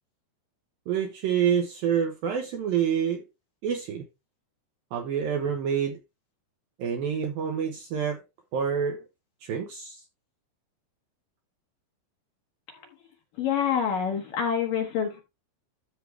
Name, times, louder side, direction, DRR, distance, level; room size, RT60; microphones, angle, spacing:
voice 1, 0.9-3.2 3.6-4.1 4.9-6.0 6.8-8.2 8.5-9.1 9.4-10.0, right 8 dB, 75° right, 2.2 m, -27 dB
voice 2, 13.4-15.2, left 8 dB, 65° left, 2.3 m, -27 dB
13.0 x 4.7 x 3.3 m
omnidirectional pair, 5.4 m